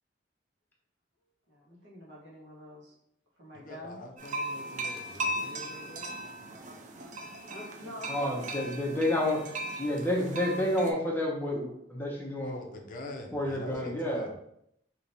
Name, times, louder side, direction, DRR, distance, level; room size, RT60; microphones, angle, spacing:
voice 1, 1.5-3.0 3.4-4.0 7.5-8.5 8.9-9.0, left 1 dB, 85° right, -5 dB, 1.3 m, -46 dB
voice 2, 3.5-6.2 12.4-14.3, left 2 dB, 50° left, 3 dB, 0.5 m, -44 dB
sound 1, 4.2-10.9, right 1 dB, 45° right, 0.4 m, -38 dB
voice 3, 8.1-9.4 9.8-12.5 13.3-14.3, left 1 dB, 10° left, -2 dB, 0.7 m, -29 dB
3.3 x 2.9 x 2.7 m, 0.74 s
head